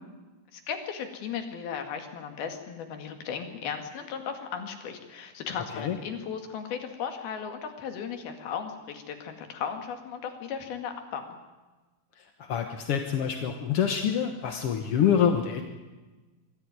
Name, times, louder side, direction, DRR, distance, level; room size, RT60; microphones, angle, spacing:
voice 1, 0.5-11.4, left 7 dB, 80° left, 5 dB, 4.0 m, -36 dB
voice 2, 12.5-15.6, left 8 dB, 65° left, 5 dB, 1.5 m, -26 dB
23.5 x 14.0 x 9.5 m, 1.2 s
omnidirectional pair, 4.3 m